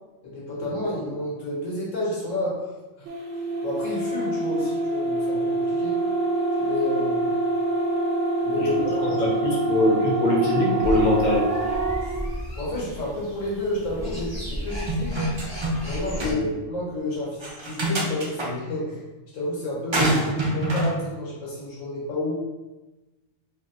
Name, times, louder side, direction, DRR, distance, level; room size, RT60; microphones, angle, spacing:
voice 1, 0.2-2.7 3.6-6.0 6.6-7.4 8.4-9.2 12.0-12.2 12.6-15.3 15.8-19.0 19.3-22.3, left 1 dB, 85° left, -5 dB, 1.4 m, -30 dB
sound 1, 3.1-12.1, right 2 dB, 70° right, 1.0 m, -26 dB
voice 2, 9.2-11.5 16.2-16.5, left 1 dB, 40° left, -3 dB, 0.9 m, -22 dB
sound 2, 10.8-16.3, equal, 15° left, 1.1 m, -34 dB
sound 3, 14.9-15.9 16.2-16.3 17.4-18.5 19.9-20.9, right 1 dB, 40° right, 0.4 m, -25 dB
4.1 x 3.0 x 2.4 m, 1.1 s
omnidirectional pair, 1.3 m